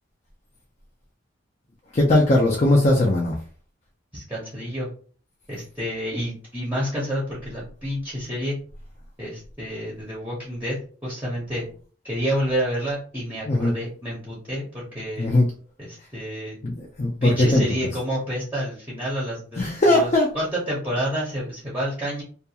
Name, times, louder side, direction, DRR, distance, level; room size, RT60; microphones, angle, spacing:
voice 1, 1.9-3.4 13.5-13.8 15.2-15.5 16.6-17.6 19.6-20.3, left 1 dB, 35° left, -1 dB, 0.4 m, -19 dB
voice 2, 4.1-4.9 5.5-8.6 9.2-10.8 11.0-11.7 12.0-15.3 15.8-16.6 17.2-22.2, equal, 10° right, -6 dB, 0.7 m, -29 dB
2.4 x 2.2 x 2.8 m, 0.41 s
head